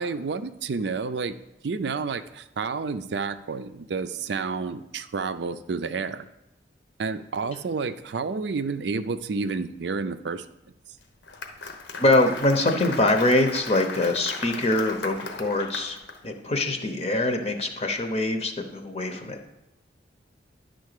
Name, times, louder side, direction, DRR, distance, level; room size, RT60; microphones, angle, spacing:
voice 1, 0.0-1.4 1.6-6.2 7.0-10.4, right 4 dB, 70° right, 12 dB, 0.5 m, -30 dB
Applause, 11.0-16.2, left 3 dB, 80° left, 1.0 m, -37 dB
voice 2, 12.0-19.4, left 2 dB, 35° left, 5 dB, 0.7 m, -24 dB
10.5 x 3.9 x 6.6 m, 0.90 s
head